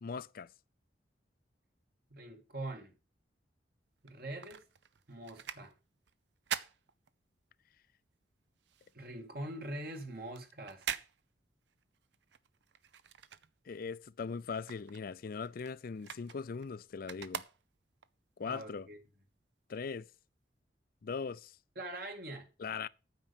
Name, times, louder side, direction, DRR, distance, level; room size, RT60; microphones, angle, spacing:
voice 1, 0.0-0.5 13.7-17.4 18.4-18.9 19.7-20.0 21.0-21.6 22.6-22.9, left 5 dB, 55° left, 0.4 m, -40 dB
voice 2, 2.1-2.9 4.0-4.6 5.1-5.7 8.9-10.9 18.5-19.0 21.8-22.5, right 1 dB, 60° right, 2.0 m, -43 dB
sound 1, 4.0-7.7 8.0-14.0 14.3-18.1 18.6-18.7, right 8 dB, 90° right, 0.6 m, -45 dB
9.1 x 5.4 x 7.0 m
head